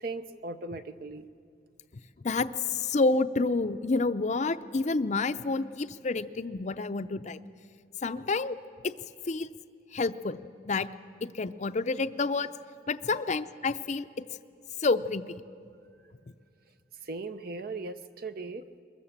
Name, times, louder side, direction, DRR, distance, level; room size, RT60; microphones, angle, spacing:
voice 1, 0.0-1.3 17.1-18.6, right 3 dB, 55° right, 10 dB, 0.7 m, -38 dB
voice 2, 2.2-7.4 8.0-8.6 8.8-8.9 9.3-9.5 9.9-10.9 11.2-12.5 12.9-14.1 14.8-15.3, left 3 dB, 40° left, 12 dB, 0.5 m, -29 dB
22.5 x 21.5 x 7.3 m, 2.4 s
head